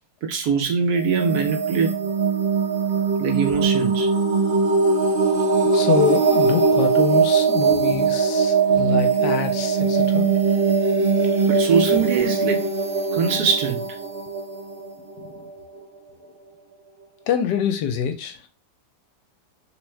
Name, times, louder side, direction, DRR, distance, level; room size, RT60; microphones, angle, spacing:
voice 1, 0.2-1.9 3.2-4.1 9.3-9.4 11.5-12.6 13.1-13.9, right 6 dB, 65° right, 1.1 m, -22 dB
sound 1, 1.0-15.6, right 4 dB, 45° right, 0.9 m, -21 dB
voice 2, 5.7-10.3 17.3-18.4, left 7 dB, 75° left, 1.2 m, -25 dB
3.4 x 3.1 x 3.1 m
omnidirectional pair, 1.9 m